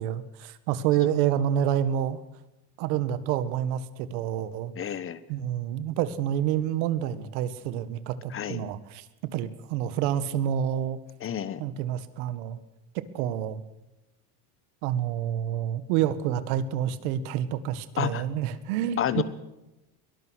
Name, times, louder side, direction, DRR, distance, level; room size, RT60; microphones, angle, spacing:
voice 1, 0.0-2.2 2.8-4.7 5.3-9.1 9.3-11.0 11.6-12.6 13.1-13.6 14.8-19.2, right 10 dB, 90° right, 13 dB, 1.8 m, -28 dB
voice 2, 4.8-5.2 8.3-8.6 11.2-11.6 18.0-18.2 19.0-19.2, left 9 dB, 30° left, 15 dB, 1.2 m, -29 dB
22.5 x 19.0 x 6.4 m, 0.98 s
cardioid pair, 150°, 43 cm